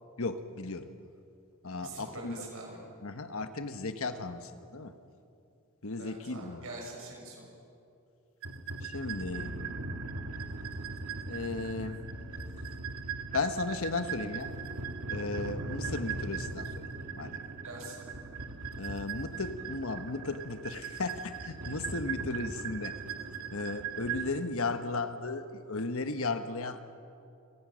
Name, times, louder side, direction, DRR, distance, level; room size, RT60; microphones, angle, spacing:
voice 1, 0.2-0.9 1.6-2.5 3.0-4.9 5.8-6.7 8.8-9.6 11.3-12.0 13.3-14.5 15.1-16.7 17.1-17.4 18.8-22.9 23.5-26.8, left 3 dB, 65° left, 9 dB, 1.2 m, -35 dB
voice 2, 1.8-2.8 6.0-7.4 17.6-18.0, right 2 dB, 65° right, -1 dB, 6.8 m, -44 dB
sound 1, 8.4-24.3, right 4 dB, 85° right, 1.9 m, -39 dB
29.0 x 18.0 x 6.4 m, 2.5 s
head